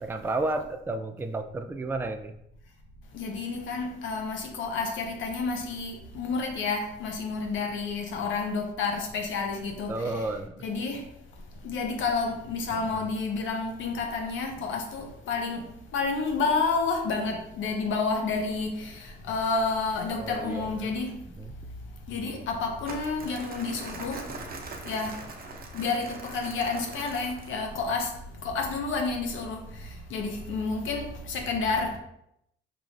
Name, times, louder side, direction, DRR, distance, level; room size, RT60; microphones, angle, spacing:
voice 1, 0.0-2.3 9.9-10.5 12.7-13.1 20.2-20.9 21.3-21.5, right 2 dB, 10° right, 0.3 m, -32 dB
voice 2, 3.1-9.9 10.6-11.1 11.6-21.2 22.1-24.2 24.8-25.2 25.7-28.1 28.4-32.0, left 4 dB, 80° left, 0.8 m, -30 dB
Crumpling crinkling, 22.8-27.7, right 3 dB, 50° right, 0.8 m, -42 dB
4.8 x 3.0 x 2.6 m
cardioid pair, 90°, 20 cm